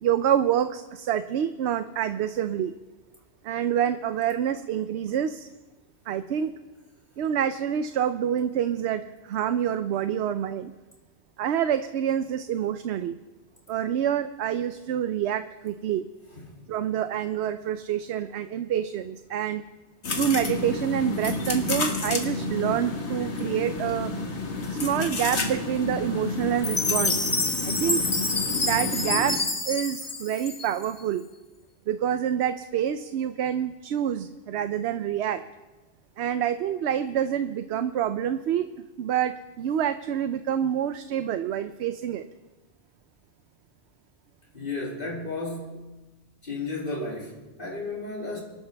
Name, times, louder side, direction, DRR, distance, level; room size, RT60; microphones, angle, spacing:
voice 1, 0.0-2.7 3.4-5.5 6.1-6.5 7.2-10.7 11.4-13.1 13.7-16.1 16.7-19.6 20.1-24.1 24.7-27.3 27.6-28.0 28.6-29.4 29.7-31.2 31.9-35.4 36.2-38.7 39.0-42.2, right 9 dB, 75° right, 11 dB, 0.9 m, -27 dB
sound 1, 20.0-29.4, left 3 dB, 85° left, 1.8 m, -30 dB
Chime, 26.6-31.0, left 2 dB, 25° left, 0.8 m, -27 dB
voice 2, 44.5-45.9 46.4-48.4, left 3 dB, 50° left, -4 dB, 3.0 m, -33 dB
24.5 x 12.5 x 3.4 m, 1.2 s
omnidirectional pair, 1.1 m